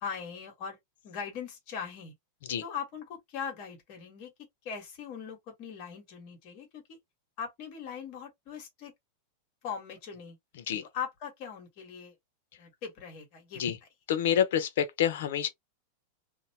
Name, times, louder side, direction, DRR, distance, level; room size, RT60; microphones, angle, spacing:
voice 1, 0.0-0.8 1.0-2.1 2.6-4.3 4.6-7.0 7.4-8.9 9.6-10.4 10.8-12.1 12.6-13.9, left 7 dB, 45° left, 1.4 m, -40 dB
voice 2, 14.1-15.5, left 9 dB, 75° left, 0.7 m, -27 dB
2.7 x 2.1 x 2.8 m
supercardioid pair, 150°, 0 cm